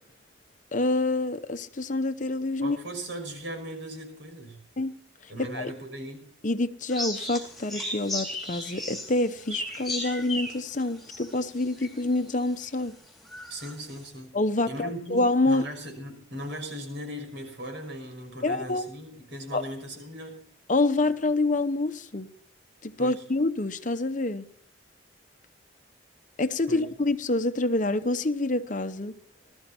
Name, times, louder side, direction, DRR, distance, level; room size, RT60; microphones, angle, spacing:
voice 1, 0.7-2.8 4.8-5.0 5.2-5.7 6.4-13.0 14.3-15.6 18.4-18.9 19.5-19.7 20.7-22.3 22.8-24.5 26.4-29.2, left 2 dB, 40° left, 0.8 m, -27 dB
voice 2, 2.6-4.6 5.3-6.2 13.5-14.4 14.7-20.4 23.0-23.2 26.7-26.8, equal, 65° right, 6.2 m, -38 dB
sound 1, 6.9-12.1 12.6-12.7 13.3-13.7, left 1 dB, ahead, 3.8 m, -35 dB
20.5 x 13.5 x 4.3 m
head